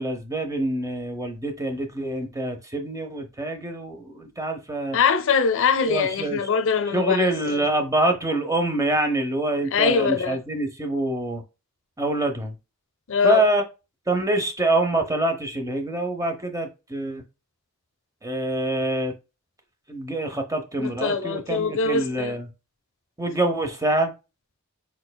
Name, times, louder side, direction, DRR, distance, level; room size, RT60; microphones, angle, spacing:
voice 1, 0.0-5.0 5.9-6.4 6.9-11.4 12.0-12.5 13.2-13.6 14.1-17.2 18.2-19.1 19.9-22.5 23.2-24.1, right 1 dB, 15° right, 0.8 m, -25 dB
voice 2, 4.9-7.7 9.7-10.4 13.1-13.4 20.8-22.3, left 5 dB, 65° left, 0.7 m, -23 dB
4.5 x 4.5 x 2.3 m
head